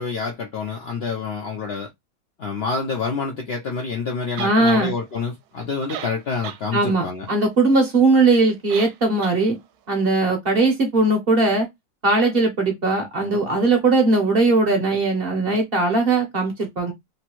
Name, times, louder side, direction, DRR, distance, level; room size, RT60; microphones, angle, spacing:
voice 1, 0.0-1.9 2.4-7.3, left 4 dB, 65° left, 0.6 m, -27 dB
voice 2, 4.4-4.9 6.7-9.6 9.9-11.7 12.0-16.9, right 3 dB, 45° right, 0.9 m, -19 dB
sound 1, 4.4-4.8 5.6-5.7 5.9-6.6 7.0-7.1 8.7-9.0 9.2-9.4, right 8 dB, 75° right, 1.0 m, -34 dB
3.0 x 2.6 x 2.9 m
omnidirectional pair, 1.6 m